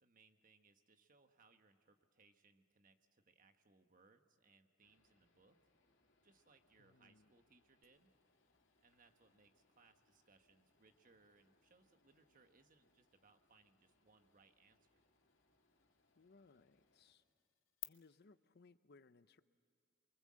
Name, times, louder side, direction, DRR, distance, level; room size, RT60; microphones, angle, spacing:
voice 1, 0.0-5.7 6.2-8.1 8.8-15.0, right 4 dB, 45° right, 7 dB, 1.3 m, -71 dB
sound 1, 4.8-17.1, left 2 dB, 75° left, 2.8 m, -80 dB
voice 2, 6.8-7.3 16.1-17.2 17.8-19.4, left 3 dB, 55° left, 13 dB, 0.6 m, -66 dB
sound 2, 7.8-17.8, left 18 dB, 90° left, 0.8 m, -62 dB
24.0 x 23.5 x 7.6 m, 2.2 s
head